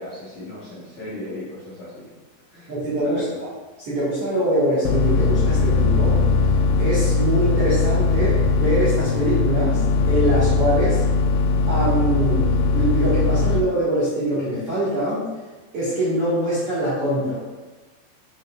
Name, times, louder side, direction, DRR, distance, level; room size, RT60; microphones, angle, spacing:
voice 1, 0.0-2.1 2.5-2.7 3.0-3.4, left 1 dB, 60° left, -11 dB, 1.9 m, -36 dB
voice 2, 2.7-3.2 3.8-6.3 6.8-11.0 11.7-15.3 15.7-17.4, right 1 dB, 50° right, -11 dB, 1.8 m, -23 dB
sound 1, 4.9-13.6, left 3 dB, 85° left, 2.7 m, -19 dB
8.1 x 6.4 x 2.5 m, 1.2 s
omnidirectional pair, 5.1 m